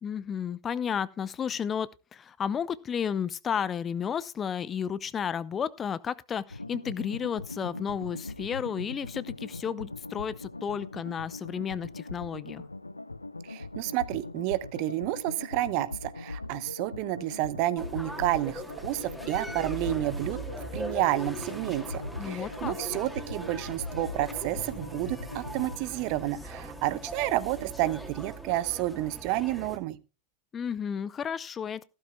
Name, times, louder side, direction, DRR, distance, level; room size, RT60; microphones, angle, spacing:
voice 1, 0.0-12.6 22.2-22.8 30.5-31.8, left 7 dB, 25° left, 0.6 m, -32 dB
sound 1, 6.5-25.8, left 2 dB, 85° left, 0.5 m, -40 dB
voice 2, 13.5-20.4 20.7-30.0, right 16 dB, 45° right, 0.9 m, -30 dB
sound 2, 17.8-29.8, right 1 dB, ahead, 2.5 m, -40 dB
15.5 x 13.0 x 2.2 m
figure-of-eight pair, 90°, 0 cm